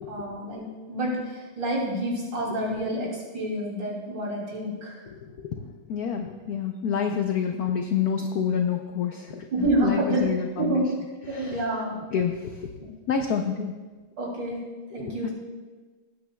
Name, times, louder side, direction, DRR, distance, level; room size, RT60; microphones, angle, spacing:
voice 1, 0.1-3.1 3.3-5.0 9.5-10.3 10.6-10.9 11.3-12.0 14.2-14.6 14.9-15.3, right 1 dB, 55° right, -3 dB, 3.6 m, -28 dB
voice 2, 5.1-9.5 9.8-10.8 11.3-11.7 12.1-12.7 13.1-13.7 14.9-15.3, left 7 dB, 75° left, 4 dB, 0.8 m, -28 dB
20.5 x 9.2 x 2.3 m, 1.3 s
omnidirectional pair, 2.4 m